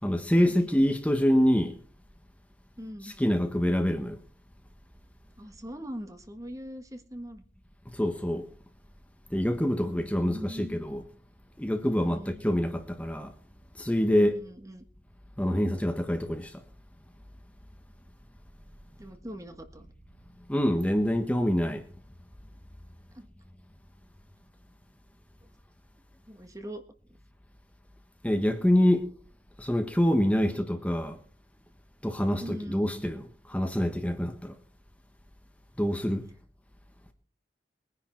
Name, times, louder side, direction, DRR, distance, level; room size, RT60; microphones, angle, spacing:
voice 1, 0.0-1.8 3.0-4.2 7.9-8.5 9.3-11.0 11.6-13.3 13.7-14.4 15.4-16.6 20.5-21.9 28.2-29.1 29.6-31.2 32.0-34.5 35.8-36.2, equal, 5° left, 1.3 m, -26 dB
voice 2, 2.8-3.1 5.4-7.4 9.8-10.7 12.0-12.4 14.1-14.8 19.0-19.9 23.1-23.3 26.3-27.2 30.3-30.6 32.4-32.9, equal, 15° right, 1.5 m, -42 dB
21.5 x 10.5 x 4.5 m
head